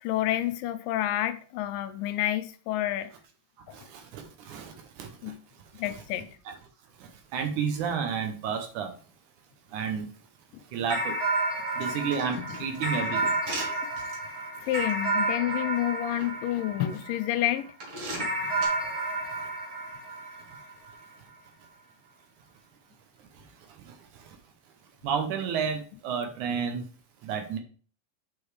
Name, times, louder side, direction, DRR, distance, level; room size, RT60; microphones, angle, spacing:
voice 1, 0.0-3.1 3.7-3.8 5.2-5.4 5.8-6.3 10.5-10.6 12.4-12.6 13.2-13.3 13.8-13.9 14.3-17.7, left 13 dB, 80° left, 2.2 m, -29 dB
voice 2, 3.7-5.3 7.0-9.0 9.7-10.1 10.7-11.2 11.7-13.6 14.6-14.7 18.3-19.4 23.3-24.4 25.0-26.9 27.2-27.6, right 6 dB, 70° right, 2.1 m, -32 dB
sound 1, 10.9-17.5 18.2-20.9, right 2 dB, 20° right, 1.2 m, -31 dB
sound 2, 11.8-14.2 14.7-14.9 15.7-16.3 16.9-17.0 17.8-18.7, right 2 dB, 45° right, 2.5 m, -39 dB
7.9 x 5.3 x 3.3 m
omnidirectional pair, 4.0 m